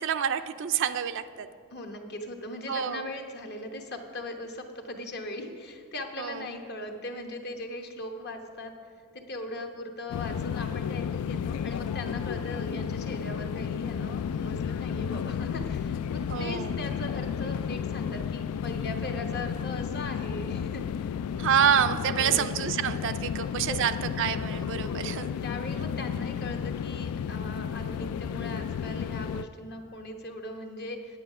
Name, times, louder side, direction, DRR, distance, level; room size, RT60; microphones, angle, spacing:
voice 1, 0.0-1.5 2.7-3.1 6.2-6.4 16.3-16.7 21.4-25.3, right 8 dB, 55° right, 11 dB, 0.4 m, -27 dB
voice 2, 1.7-8.7 9.1-21.1 22.1-22.5 23.4-23.8 24.9-31.2, left 1 dB, 45° left, 4 dB, 1.0 m, -39 dB
sound 1, 10.1-29.4, left 7 dB, 80° left, 0.3 m, -32 dB
9.6 x 8.8 x 5.5 m, 2.4 s
head